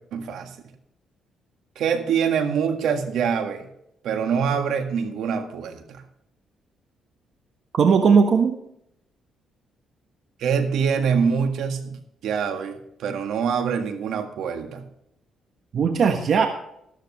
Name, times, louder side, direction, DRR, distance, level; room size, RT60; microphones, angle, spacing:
voice 1, 0.1-0.5 1.7-3.7 4.0-6.0 10.4-14.8, right 6 dB, 80° right, 6 dB, 1.8 m, -25 dB
voice 2, 7.7-8.6 15.7-16.5, right 6 dB, 60° right, 5 dB, 1.2 m, -18 dB
13.5 x 13.0 x 3.2 m, 0.78 s
cardioid pair, 90°, 0 cm